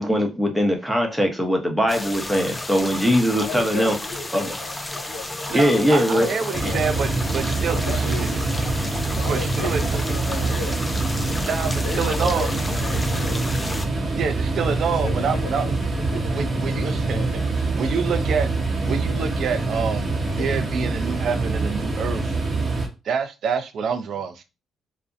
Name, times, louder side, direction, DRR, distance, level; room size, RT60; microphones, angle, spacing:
voice 1, 0.0-3.9 4.3-4.5 5.5-6.3, equal, 5° right, 2 dB, 0.7 m, -21 dB
sound 1, 1.9-13.9, left 1 dB, 20° left, 0.4 m, -32 dB
voice 2, 3.4-7.2 7.7-8.7 9.2-10.8 11.8-13.5 14.9-15.7 16.0-16.3 16.9-17.5 20.4-20.5, left 5 dB, 85° left, -1 dB, 0.7 m, -35 dB
voice 3, 5.5-8.0 8.9-9.0 9.3-9.9 11.4-12.5 14.2-15.7 16.1-17.2 17.8-18.5 18.9-20.1 20.3-22.4 23.0-24.4, right 6 dB, 65° right, 8 dB, 0.4 m, -27 dB
sound 2, 6.5-22.9, right 3 dB, 40° right, 0.7 m, -25 dB
2.5 x 2.0 x 2.4 m, 0.27 s
cardioid pair, 75°, 0 cm